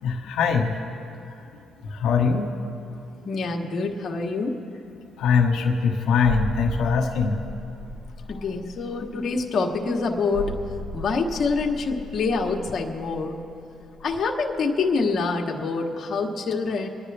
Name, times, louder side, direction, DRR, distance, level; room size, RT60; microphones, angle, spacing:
voice 1, 0.0-0.7 1.3-1.4 1.8-2.5 5.2-7.4 8.3-8.4, left 5 dB, 80° left, 2 dB, 1.2 m, -22 dB
voice 2, 3.2-4.6 8.3-10.5 10.9-13.4 14.0-16.9, left 4 dB, 50° left, 0 dB, 1.2 m, -26 dB
sound 1, 6.2-14.6 14.9-15.0, right 1 dB, 35° right, 1.2 m, -36 dB
26.0 x 10.0 x 3.4 m, 2.8 s
cardioid pair, 90°, 0 cm